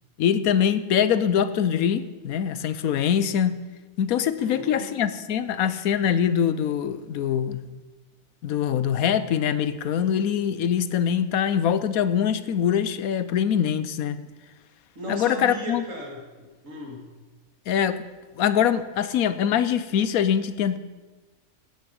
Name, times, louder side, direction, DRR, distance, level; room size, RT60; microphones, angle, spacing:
voice 1, 0.2-3.6 4.0-7.6 8.4-14.2 15.1-15.8 17.7-18.0 18.4-20.8, left 8 dB, 85° left, 13 dB, 1.2 m, -23 dB
voice 2, 4.4-4.9 15.0-17.1, equal, 65° right, 0 dB, 2.9 m, -36 dB
17.0 x 9.3 x 5.4 m, 1.2 s
omnidirectional pair, 1.5 m